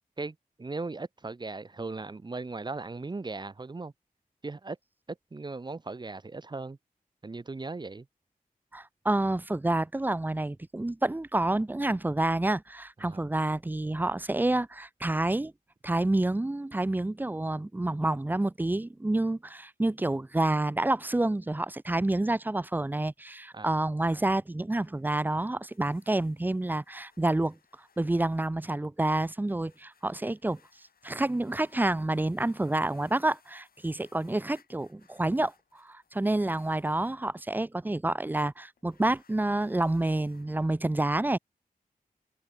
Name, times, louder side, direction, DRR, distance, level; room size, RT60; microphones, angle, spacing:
voice 1, 0.2-3.9 4.4-4.8 5.1-6.8 7.2-8.1 13.0-13.2 23.5-23.7, right 3 dB, 30° right, 1.0 m, -38 dB
voice 2, 8.7-15.5 15.8-27.6 28.0-30.6 31.0-41.4, right 2 dB, 15° right, 0.5 m, -28 dB
sound 1, 24.5-37.2 38.8-40.6, left 6 dB, 85° left, 7.3 m, -65 dB
wide cardioid pair, 95°, 15 cm